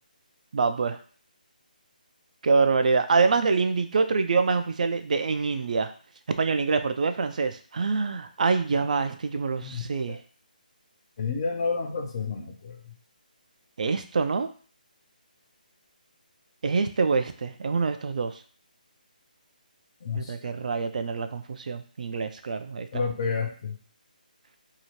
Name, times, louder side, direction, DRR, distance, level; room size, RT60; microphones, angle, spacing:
voice 1, 0.5-1.0 2.4-5.9 6.4-10.2 13.8-14.5 16.6-18.3 20.1-22.9, right 4 dB, 55° right, 8 dB, 0.3 m, -25 dB
voice 2, 9.6-10.2 11.2-12.9 20.0-20.3 22.9-23.8, left 5 dB, 35° left, 3 dB, 0.5 m, -30 dB
2.7 x 2.4 x 3.0 m, 0.41 s
figure-of-eight pair, 155°, 5 cm